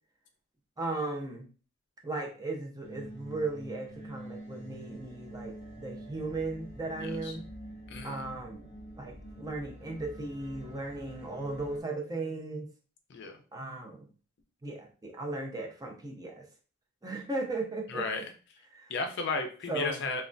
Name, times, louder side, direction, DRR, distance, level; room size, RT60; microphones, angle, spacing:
voice 1, 0.8-1.5 2.0-7.4 8.0-8.7 9.0-12.7 13.5-14.1 14.6-16.5 17.0-18.2 18.7-18.9 19.7-20.0, right 2 dB, 20° right, 1 dB, 0.5 m, -36 dB
sound 1, 2.8-11.8, right 1 dB, 30° left, 1.2 m, -46 dB
voice 2, 7.0-7.3 7.9-8.2 13.1-13.3 17.9-18.2 18.9-20.2, left 4 dB, 55° left, 5 dB, 0.5 m, -34 dB
3.2 x 2.3 x 2.5 m, 0.38 s
head